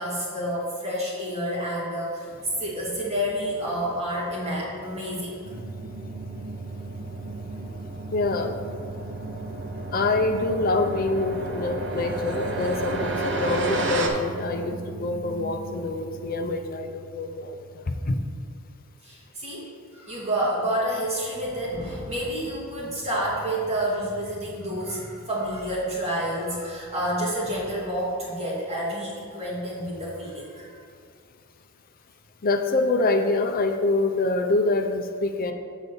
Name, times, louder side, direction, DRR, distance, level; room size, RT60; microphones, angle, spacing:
voice 1, 0.0-2.3 2.6-5.4 19.0-30.7, equal, 30° right, -7 dB, 2.2 m, -29 dB
sound 1, 2.3-14.1, right 2 dB, 55° right, 0.9 m, -34 dB
sound 2, 5.4-18.1, right 3 dB, 85° right, 1.2 m, -38 dB
voice 2, 8.1-8.6 9.9-17.6 17.9-18.2 32.4-35.5, left 2 dB, 40° left, 6 dB, 0.5 m, -25 dB
8.1 x 4.0 x 6.8 m, 2.3 s
head